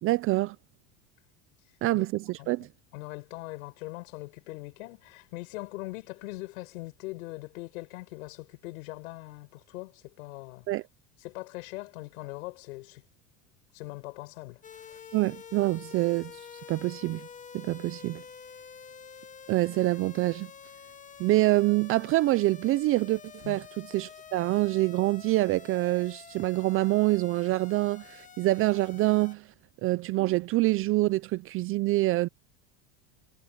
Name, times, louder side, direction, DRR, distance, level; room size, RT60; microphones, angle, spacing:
voice 1, 0.0-0.6 1.8-2.7 10.7-10.8 15.1-16.3 16.7-17.3 17.5-18.2 19.5-20.5 21.2-23.2 23.5-29.5 29.8-32.3, right 18 dB, 35° right, 0.4 m, -26 dB
voice 2, 2.9-10.6 11.2-13.0 13.7-14.6 14.9-15.0 23.4-23.6, left 21 dB, 90° left, 6.8 m, -41 dB
sound 1, 14.6-29.4, left 7 dB, 20° left, 1.1 m, -48 dB
supercardioid pair, 140°, 40 cm